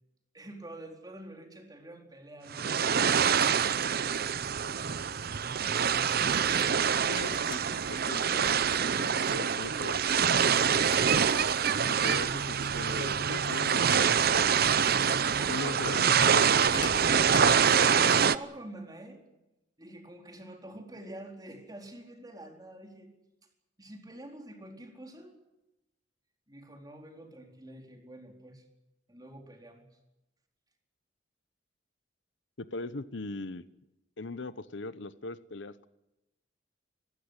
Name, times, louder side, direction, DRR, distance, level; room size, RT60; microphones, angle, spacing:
voice 1, 0.3-5.2 15.4-15.8 18.0-19.2 19.8-23.1 23.8-25.3 26.5-28.6 29.1-29.9, right 1 dB, 20° right, 3 dB, 4.2 m, -47 dB
sound 1, 2.5-18.4, right 7 dB, 55° right, 0.7 m, -25 dB
sound 2, 6.4-6.8 7.1-7.6 8.0-8.1 8.4-8.5 8.7-9.0 9.3-9.5 10.6-10.7 10.9-11.7 11.9-12.3 12.8-13.1 13.5-13.6 13.9-14.0 14.6-14.7 15.1-15.2 16.2-16.4 16.7-17.5, left 5 dB, 25° left, 1.7 m, -44 dB
voice 2, 7.1-8.6 9.0-10.4 11.9-14.8 15.5-17.5 17.9-18.0 32.6-33.6 34.2-35.9, left 3 dB, 70° left, 14 dB, 0.9 m, -40 dB
26.5 x 15.5 x 9.9 m, 0.94 s
head